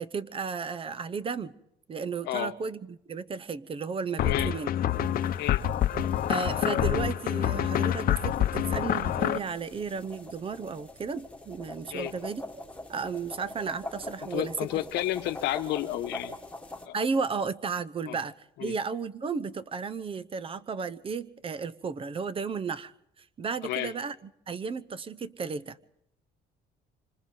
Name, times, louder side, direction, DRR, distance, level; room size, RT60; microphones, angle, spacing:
voice 1, 0.0-1.5 1.9-4.7 6.3-12.4 12.9-14.5 16.9-18.3 18.6-22.9 23.2-24.1 24.5-25.8, right 5 dB, 30° right, 16 dB, 0.8 m, -33 dB
voice 2, 4.2-4.5 5.4-5.6 11.9-12.1 14.2-16.4 16.9-17.0 18.1-18.2 18.6-18.7 23.6-23.9, left 14 dB, 85° left, 9 dB, 1.1 m, -31 dB
sound 1, 4.2-9.4, left 10 dB, 60° left, 0.9 m, -27 dB
sound 2, 4.9-16.9, left 1 dB, 5° left, 1.7 m, -45 dB
26.5 x 25.5 x 3.9 m, 0.78 s
cardioid pair, 110°, 17 cm